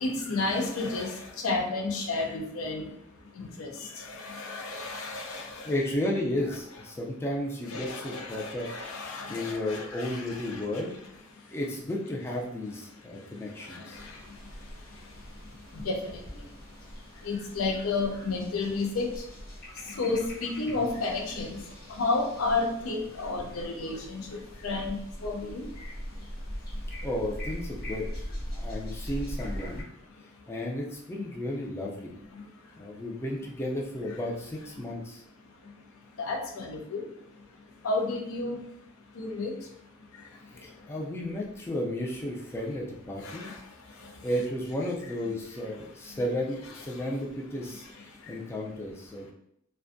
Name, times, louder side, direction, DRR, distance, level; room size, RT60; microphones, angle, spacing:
voice 1, 0.0-2.9 3.4-3.7 4.0-5.7 7.7-10.8 13.9-14.1 15.8-16.2 17.2-19.1 20.0-21.6 22.0-24.3 24.6-25.7 36.2-37.0 37.8-38.6 39.2-39.5 43.2-43.5, left 3 dB, 80° left, 2 dB, 0.5 m, -31 dB
voice 2, 5.7-8.7 9.3-10.9 11.5-14.0 20.7-20.8 27.0-28.3 28.5-29.9 30.5-32.1 32.8-35.2 40.6-43.5 44.2-47.9 48.3-49.3, left 1 dB, 10° left, -2 dB, 0.3 m, -33 dB
sound 1, 13.9-29.8, equal, 45° left, 0.9 m, -41 dB
2.5 x 2.2 x 2.5 m, 0.73 s
head